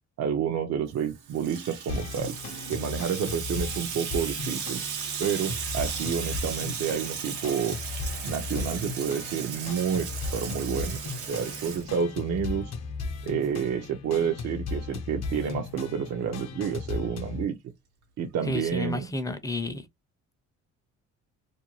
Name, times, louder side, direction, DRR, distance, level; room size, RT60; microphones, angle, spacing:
voice 1, 0.2-2.4 2.7-4.8 5.2-7.8 8.2-10.1 10.3-11.0 11.3-12.7 13.2-17.6 18.2-19.1, right 7 dB, 60° right, 0.6 m, -29 dB
Water tap faucet / Sink (filling or washing), 1.0-12.4, right 7 dB, 85° right, 0.9 m, -36 dB
sound 1, 1.9-17.4, left 4 dB, 60° left, 0.7 m, -36 dB
voice 2, 18.4-19.9, left 2 dB, 10° left, 0.5 m, -31 dB
2.5 x 2.2 x 3.0 m
cardioid pair, 90°, 30 cm